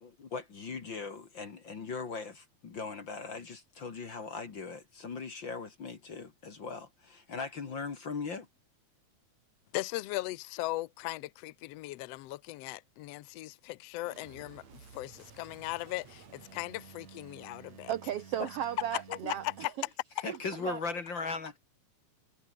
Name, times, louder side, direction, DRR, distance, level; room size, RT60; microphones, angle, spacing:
voice 1, 0.0-8.5 18.4-18.5 19.1-19.3 20.2-21.6, left 4 dB, 40° left, 2.2 m, -39 dB
voice 2, 9.7-17.9 19.4-19.5, left 18 dB, 75° left, 1.5 m, -38 dB
sound 1, 14.0-19.7, right 6 dB, 55° right, 4.2 m, -53 dB
voice 3, 17.9-19.7 20.3-20.8, right 10 dB, 80° right, 1.4 m, -35 dB
omnidirectional pair, 3.8 m